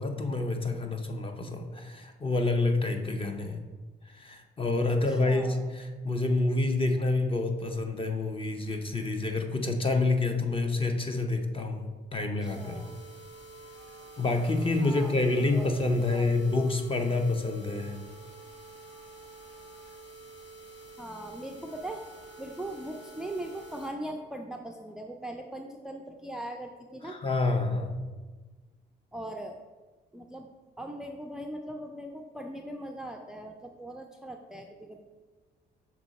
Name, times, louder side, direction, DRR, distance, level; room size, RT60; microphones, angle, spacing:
voice 1, 0.0-3.6 4.2-12.8 14.2-18.0 27.0-27.9, left 2 dB, 25° left, 4 dB, 0.7 m, -28 dB
voice 2, 4.9-5.7 12.2-12.9 14.8-15.7 15.9-16.5 21.0-22.0 22.4-27.2 29.1-29.6 30.1-30.5 30.8-35.0, right 1 dB, 5° right, 4 dB, 0.4 m, -40 dB
sound 1, 12.4-23.9 24.4-24.5 24.9-25.0 25.4-25.5, right 3 dB, 65° left, 1.8 m, -49 dB
6.1 x 3.8 x 4.1 m, 1.3 s
cardioid pair, 90°, 20 cm